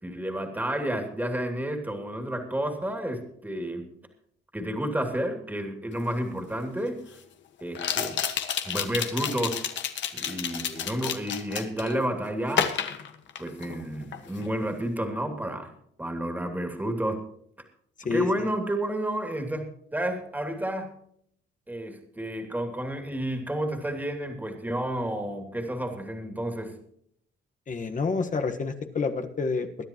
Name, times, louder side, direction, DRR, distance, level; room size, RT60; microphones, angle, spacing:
voice 1, 0.0-3.9 4.5-7.2 7.6-8.2 8.6-9.6 10.1-12.7 13.4-15.7 16.0-17.2 18.1-20.9 21.7-26.8, right 1 dB, 10° right, 5 dB, 2.7 m, -31 dB
sound 1, 6.1-6.2 7.7-12.0 12.5-13.8 14.1-14.5, left 8 dB, 70° left, 1.5 m, -30 dB
voice 2, 18.0-18.5 27.7-29.7, left 4 dB, 40° left, 6 dB, 1.4 m, -28 dB
22.5 x 10.0 x 3.0 m, 0.68 s
cardioid pair, 90°, 20 cm